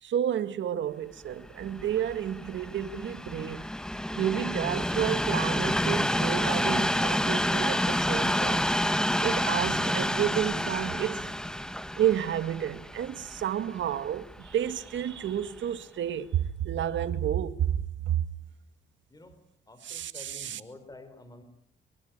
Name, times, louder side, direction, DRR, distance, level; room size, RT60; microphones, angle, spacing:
voice 1, 0.0-3.7 4.2-8.8 9.2-11.3 12.0-18.3 19.9-20.6, right 10 dB, 70° right, 2.0 m, -30 dB
Train, 1.5-14.7 15.4-15.5, equal, 5° left, 1.3 m, -29 dB
voice 2, 19.1-19.4 19.7-21.4, left 2 dB, 20° left, 3.8 m, -49 dB
24.0 x 23.5 x 9.0 m
cardioid pair, 90°, 20 cm